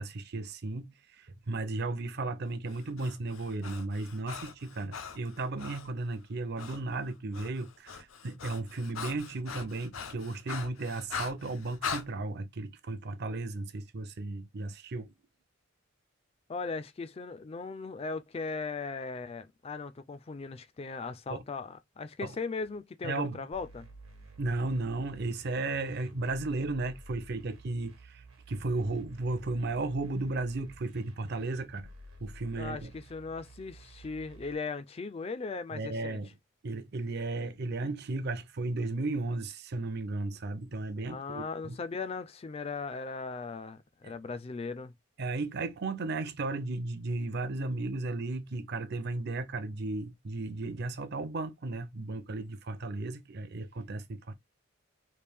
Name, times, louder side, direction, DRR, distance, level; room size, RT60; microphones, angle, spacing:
voice 1, 0.0-15.1 21.3-21.4 22.2-22.4 23.0-23.4 24.4-31.9 32.2-32.9 35.7-36.3 36.6-41.8 44.0-44.1 45.2-54.3, right 2 dB, 50° right, 0.5 m, -35 dB
Breathing, 2.7-5.9 6.6-6.8 7.1-12.1, left 6 dB, 75° left, 0.6 m, -41 dB
voice 2, 16.5-23.9 32.6-36.2 41.1-44.9, left 4 dB, 30° left, 0.3 m, -38 dB
sound 1, 23.5-34.5, right 1 dB, 85° right, 1.2 m, -52 dB
3.3 x 2.5 x 3.4 m
head